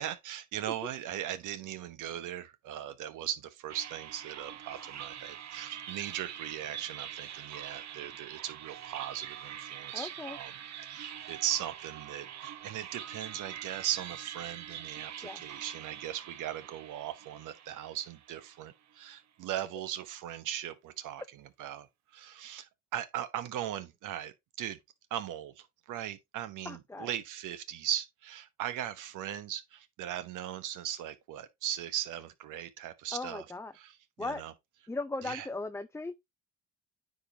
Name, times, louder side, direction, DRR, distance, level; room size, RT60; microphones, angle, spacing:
voice 1, 0.0-10.5 10.8-21.9 22.1-24.8 25.1-33.4 33.7-34.5 35.2-35.5, right 11 dB, 85° right, 1.2 m, -38 dB
sound 1, 3.7-18.9, right 10 dB, 60° right, 1.0 m, -44 dB
voice 2, 9.9-10.4 15.2-15.4 26.6-27.1 33.1-33.7 34.2-34.4 34.9-36.1, left 2 dB, 10° left, 0.5 m, -38 dB
9.6 x 5.2 x 2.9 m
cardioid pair, 90°, 30 cm